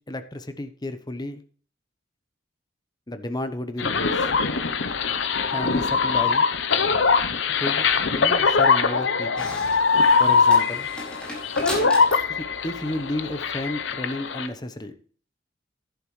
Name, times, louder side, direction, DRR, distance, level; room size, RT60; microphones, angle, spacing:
voice 1, 0.1-1.4 3.1-4.3 5.5-6.5 7.6-7.9 8.1-9.5 10.2-10.9 12.3-14.9, left 1 dB, 20° left, 9 dB, 0.9 m, -32 dB
sound 1, 3.8-14.5, left 5 dB, 70° left, 0.8 m, -22 dB
sound 2, 9.4-13.6, equal, 5° left, 4.4 m, -37 dB
11.0 x 10.5 x 3.2 m, 0.43 s
head